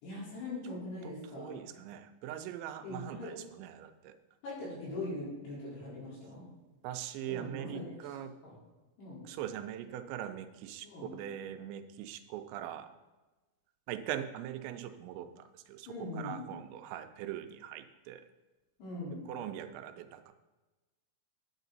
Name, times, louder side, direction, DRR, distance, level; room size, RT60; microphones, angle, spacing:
voice 1, 0.0-1.6 2.8-3.4 4.4-6.5 7.3-8.1 8.4-8.6 9.0-9.3 10.8-11.2 15.9-16.5 18.8-19.3, left 2 dB, 65° left, -8 dB, 6.0 m, -41 dB
voice 2, 1.0-4.2 6.8-8.3 9.3-12.9 13.9-15.9 16.2-18.3 19.3-20.3, right 11 dB, 85° right, 8 dB, 2.9 m, -41 dB
9.8 x 9.1 x 4.0 m, 1.2 s
omnidirectional pair, 5.2 m